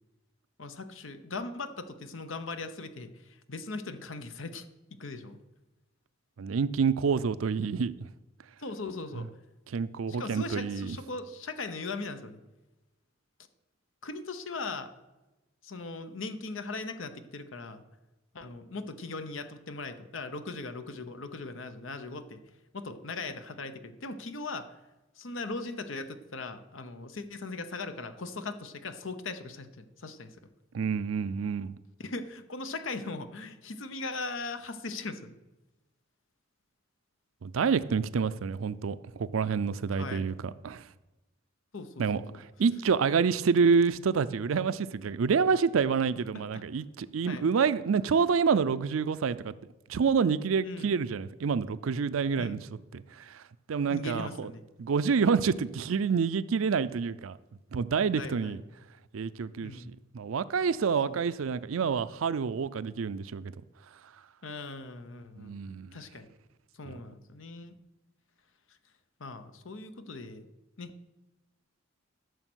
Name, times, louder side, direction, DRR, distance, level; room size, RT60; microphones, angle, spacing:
voice 1, 0.6-4.7 4.9-5.4 8.6-9.3 10.1-12.4 14.0-14.9 15.6-17.8 18.3-22.4 22.7-24.7 25.2-30.3 32.0-35.4 40.0-40.2 41.7-42.4 46.5-46.6 47.3-47.5 50.6-50.9 52.4-52.6 53.9-54.6 58.2-58.6 59.6-59.9 61.0-61.2 64.4-65.6 65.9-66.3 66.7-67.7 69.2-70.5 70.8-70.9, left 3 dB, 75° left, 0.9 m, -39 dB
voice 2, 6.4-7.9 9.2-9.3 9.7-11.0 30.7-31.8 37.4-40.9 42.0-49.5 49.9-52.6 52.9-53.4 53.7-54.5 54.8-57.4 57.7-58.6 59.1-63.5 65.4-65.9 66.9-67.0, right 5 dB, 90° right, 0.5 m, -28 dB
13.0 x 6.5 x 6.2 m
head